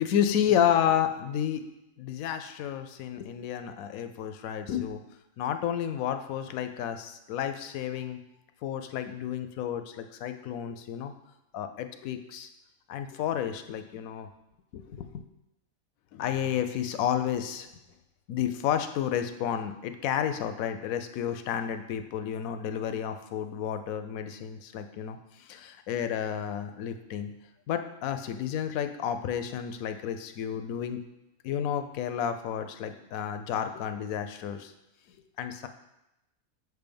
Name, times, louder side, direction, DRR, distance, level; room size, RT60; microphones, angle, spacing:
voice 1, 0.0-1.6 2.0-5.0 5.4-8.2 8.6-11.1 11.5-12.5 12.9-14.3 14.7-15.2 16.1-17.7 18.3-27.3 27.7-31.0 31.4-34.7 35.4-35.7, left 9 dB, 80° left, 8 dB, 1.0 m, -31 dB
6.3 x 3.4 x 5.2 m, 0.91 s
omnidirectional pair, 1.5 m